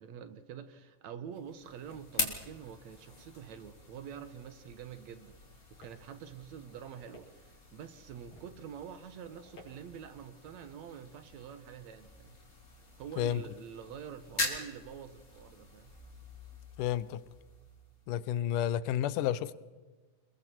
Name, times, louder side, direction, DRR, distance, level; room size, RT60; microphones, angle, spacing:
voice 1, 0.0-5.4 5.8-12.4 13.0-15.9, right 8 dB, 65° right, 2.4 m, -46 dB
sound 1, 1.3-18.3, left 2 dB, 25° left, 3.1 m, -44 dB
sound 2, 5.1-10.1, left 2 dB, 60° left, 6.1 m, -61 dB
voice 2, 16.8-17.2 18.1-19.5, left 11 dB, 90° left, 2.4 m, -31 dB
29.0 x 21.5 x 4.5 m
omnidirectional pair, 3.6 m